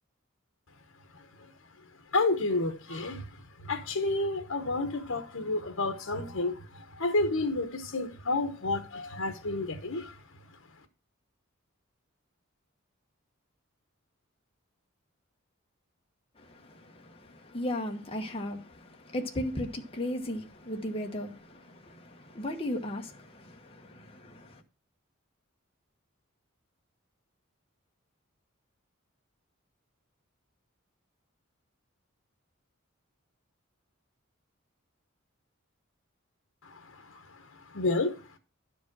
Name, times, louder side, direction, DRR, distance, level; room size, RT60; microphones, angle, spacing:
voice 1, 2.1-3.2 3.7-6.6 7.0-10.1 37.7-38.1, left 2 dB, 70° left, 1.1 m, -30 dB
voice 2, 16.5-24.6, left 1 dB, 25° left, 1.1 m, -36 dB
11.0 x 5.2 x 6.1 m
head